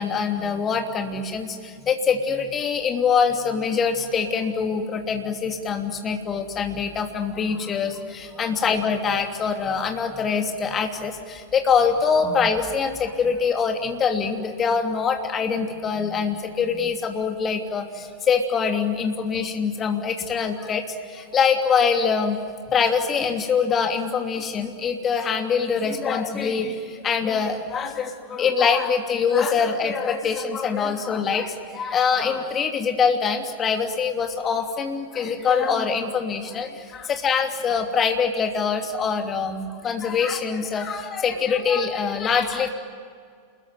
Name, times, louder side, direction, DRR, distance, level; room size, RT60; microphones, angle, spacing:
voice 1, 0.0-22.4 22.7-42.7, left 6 dB, 25° left, 5 dB, 2.8 m, -24 dB
28.5 x 21.5 x 9.4 m, 2.1 s
figure-of-eight pair, 90°, 0 cm